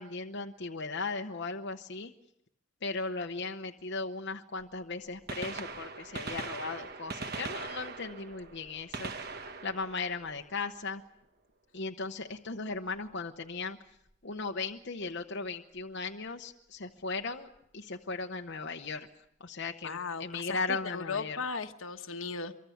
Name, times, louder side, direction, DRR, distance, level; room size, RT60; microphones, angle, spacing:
voice 1, 0.0-2.1 2.8-9.1 9.6-11.0 11.7-13.8 14.2-17.5 17.7-19.1 19.4-21.4, left 4 dB, 55° left, 4 dB, 0.9 m, -37 dB
Gunshot gunfire, 4.6-4.7 5.1-11.0 12.9-13.1 14.1-14.2 15.8-15.9 17.3-17.4 17.5-17.6, right 4 dB, 50° right, 1.3 m, -41 dB
voice 2, 19.8-22.5, left 4 dB, 75° left, 7 dB, 1.3 m, -37 dB
24.5 x 23.5 x 7.1 m, 0.79 s
head